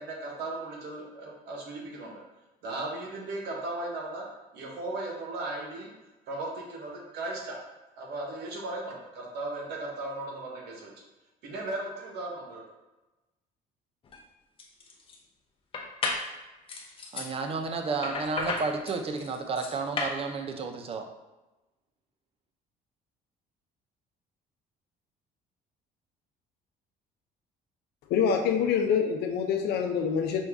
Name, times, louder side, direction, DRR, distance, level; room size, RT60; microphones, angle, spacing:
voice 1, 0.0-2.1 2.6-4.3 4.5-5.9 6.3-7.6 8.0-10.9 11.4-12.6, right 2 dB, 75° right, -1 dB, 1.2 m, -36 dB
sound 1, 14.0-14.2 14.6-15.2 15.7-16.3 16.7-17.3 18.0-20.2, left 3 dB, 30° left, 0.6 m, -33 dB
voice 2, 17.1-21.1, right 4 dB, 35° right, 5 dB, 0.5 m, -32 dB
voice 3, 28.1-30.4, left 7 dB, 75° left, 4 dB, 0.6 m, -25 dB
5.3 x 2.3 x 3.5 m, 1.1 s
cardioid pair, 110°, 17 cm